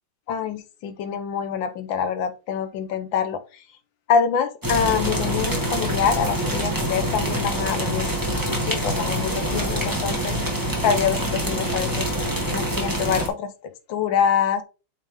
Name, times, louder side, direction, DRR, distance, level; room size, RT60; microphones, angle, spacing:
voice 1, 0.3-3.6 4.1-10.4 10.8-12.1 12.5-14.6, left 7 dB, 70° left, 10 dB, 1.6 m, -25 dB
sound 1, 4.6-13.3, right 1 dB, 10° right, 1.6 m, -25 dB
8.4 x 4.0 x 3.6 m, 0.32 s
omnidirectional pair, 2.3 m